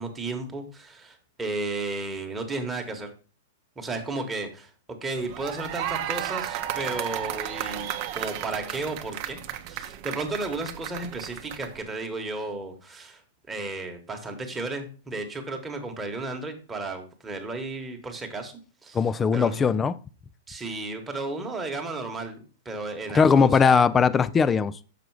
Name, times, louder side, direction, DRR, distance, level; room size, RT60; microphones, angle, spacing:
voice 1, 0.0-3.1 3.8-9.4 9.7-13.2 13.5-18.5 18.8-19.0 19.3-19.7 20.5-22.4 22.6-23.9, right 3 dB, 10° right, 1.2 m, -33 dB
sound 1, 5.2-11.8, right 11 dB, 40° right, 0.7 m, -34 dB
voice 2, 18.9-20.0 23.1-24.8, left 6 dB, 15° left, 0.3 m, -20 dB
6.8 x 4.9 x 4.7 m
hypercardioid pair, 150°, 0 cm